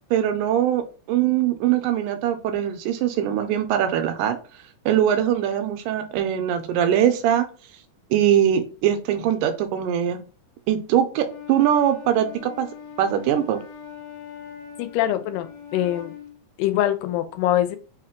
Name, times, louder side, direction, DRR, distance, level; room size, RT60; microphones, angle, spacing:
voice 1, 0.1-4.4 4.9-7.5 8.1-10.2 10.7-12.7 13.0-13.6, right 10 dB, 85° right, 8 dB, 2.1 m, -22 dB
Wind instrument woodwind instrument, 11.2-16.4, left 8 dB, 65° left, 2.0 m, -41 dB
voice 2, 14.8-16.1 16.6-17.8, left 12 dB, 85° left, 9 dB, 2.1 m, -23 dB
5.0 x 2.2 x 3.6 m, 0.36 s
omnidirectional pair, 3.8 m